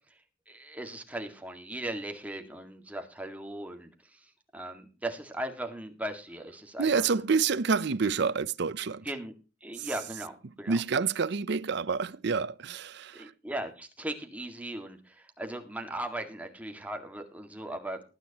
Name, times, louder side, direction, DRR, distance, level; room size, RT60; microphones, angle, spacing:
voice 1, 0.5-7.2 9.0-9.3 9.6-10.8 13.1-18.0, right 1 dB, 10° right, 1.8 m, -38 dB
voice 2, 6.8-9.0 9.8-9.9 10.7-13.3, right 5 dB, 60° right, 0.6 m, -28 dB
19.5 x 9.5 x 2.9 m
head